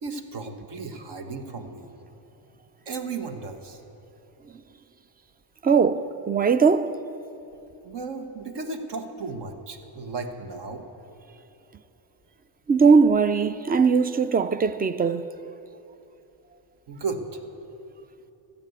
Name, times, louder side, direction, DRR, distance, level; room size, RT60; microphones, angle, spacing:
voice 1, 0.0-1.9 2.9-3.8 7.8-10.8 16.9-17.4, right 4 dB, 55° right, 1.4 m, -34 dB
voice 2, 5.6-7.0 12.7-15.3, right 5 dB, 20° right, 0.4 m, -20 dB
14.5 x 7.0 x 8.3 m
supercardioid pair, 80°, 49 cm